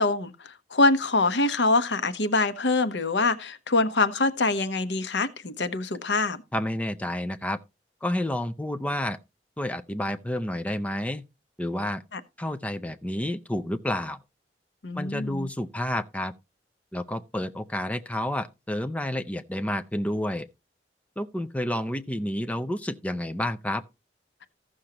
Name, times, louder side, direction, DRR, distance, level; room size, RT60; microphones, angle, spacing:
voice 1, 0.0-6.4 12.1-12.2 14.8-15.5, left 3 dB, 80° left, 0.9 m, -24 dB
voice 2, 6.5-7.6 8.0-9.2 9.6-11.2 11.6-12.0 12.4-14.2 14.9-16.3 16.9-20.5 21.2-23.8, left 1 dB, 10° left, 0.5 m, -30 dB
15.0 x 6.4 x 2.9 m
head